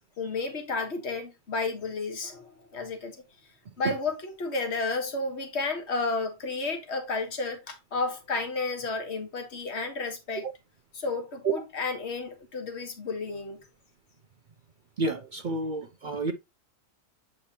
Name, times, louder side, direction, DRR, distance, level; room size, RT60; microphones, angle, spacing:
voice 1, 0.2-3.2 3.8-10.4 11.0-13.6, left 3 dB, 45° left, 1.8 m, -32 dB
voice 2, 15.0-16.3, right 3 dB, 70° right, 0.4 m, -29 dB
8.5 x 4.9 x 2.9 m
omnidirectional pair, 1.6 m